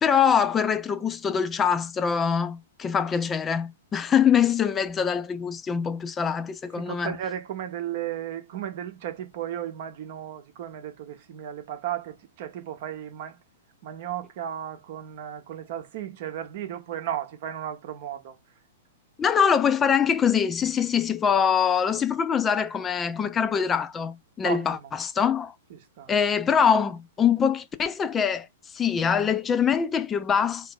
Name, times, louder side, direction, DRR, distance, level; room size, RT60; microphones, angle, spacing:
voice 1, 0.0-7.1 19.2-25.5 26.1-30.7, left 7 dB, 20° left, 0.3 m, -24 dB
voice 2, 6.8-13.4 13.8-18.3 24.4-24.9 25.7-26.1, right 10 dB, 50° right, 0.7 m, -35 dB
2.9 x 2.5 x 3.7 m
figure-of-eight pair, 105°, 0 cm